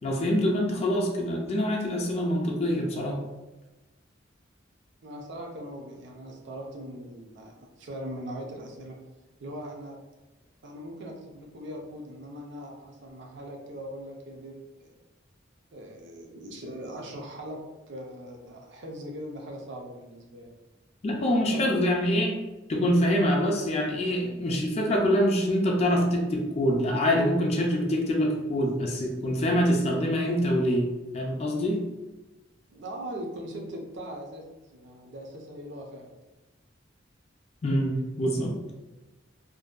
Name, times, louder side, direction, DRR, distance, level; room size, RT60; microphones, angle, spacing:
voice 1, 0.0-3.2 21.0-22.4 22.7-30.9 31.1-31.8 37.6-38.6, equal, 35° left, 0 dB, 0.3 m, -25 dB
voice 2, 5.0-9.0 9.4-10.0 10.6-15.0 15.7-17.6 17.9-20.5 21.2-21.8 32.7-34.4 34.7-36.1, equal, 65° right, 0 dB, 0.5 m, -40 dB
2.6 x 2.1 x 2.3 m, 1.1 s
head